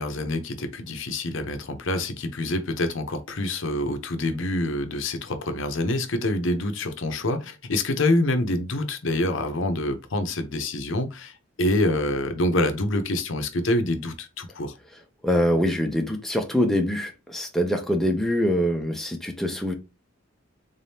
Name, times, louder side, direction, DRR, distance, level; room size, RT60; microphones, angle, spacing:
voice 1, 0.0-14.7, left 1 dB, 65° left, 0.7 m, -26 dB
voice 2, 15.2-19.7, equal, ahead, 0.5 m, -24 dB
3.8 x 3.5 x 2.7 m
head